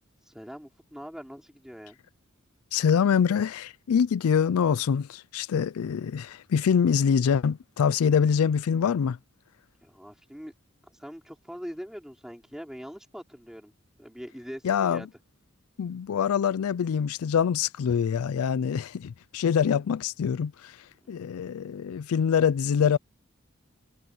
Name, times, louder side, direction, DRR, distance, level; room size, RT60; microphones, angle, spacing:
voice 1, 0.2-2.0 9.8-10.5 10.8-13.7 14.0-15.1 21.0-21.2, equal, 5° right, 4.7 m, -42 dB
voice 2, 2.7-9.2 14.6-15.0 15.8-20.8 21.1-23.0, left 7 dB, 90° left, 0.4 m, -25 dB
head